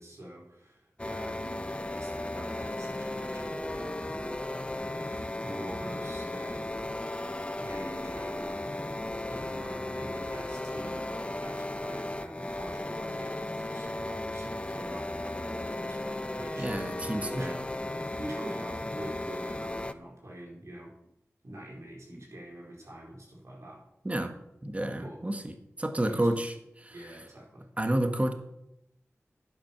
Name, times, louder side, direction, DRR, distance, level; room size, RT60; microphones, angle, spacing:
voice 1, 0.0-4.0 5.0-7.1 7.6-8.8 9.3-17.7 18.2-20.9 21.4-23.8 25.0-25.2 26.0-26.3 26.9-27.7, right 1 dB, 70° right, -2 dB, 4.6 m, -45 dB
sound 1, 1.0-19.9, left 1 dB, 20° left, 0.8 m, -35 dB
voice 2, 16.6-17.6 24.0-24.3 24.6-25.5 25.8-26.9 27.8-28.3, right 1 dB, 25° right, 6 dB, 1.5 m, -30 dB
11.5 x 9.4 x 5.9 m, 0.82 s
cardioid pair, 45°, 5 cm